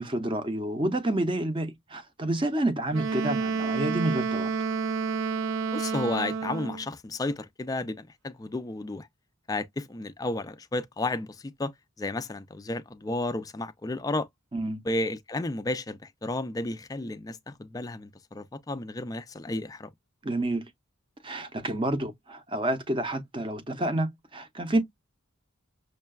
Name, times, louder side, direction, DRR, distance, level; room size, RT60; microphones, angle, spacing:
voice 1, 0.0-4.5 14.5-14.8 20.2-20.7 21.2-24.8, right 1 dB, 25° right, 0.6 m, -29 dB
Wind instrument woodwind instrument, 2.9-6.9, right 5 dB, 60° right, 0.4 m, -29 dB
voice 2, 5.7-9.1 9.5-14.3 14.8-19.9, left 2 dB, 15° left, 0.3 m, -32 dB
6.3 x 2.2 x 2.2 m
head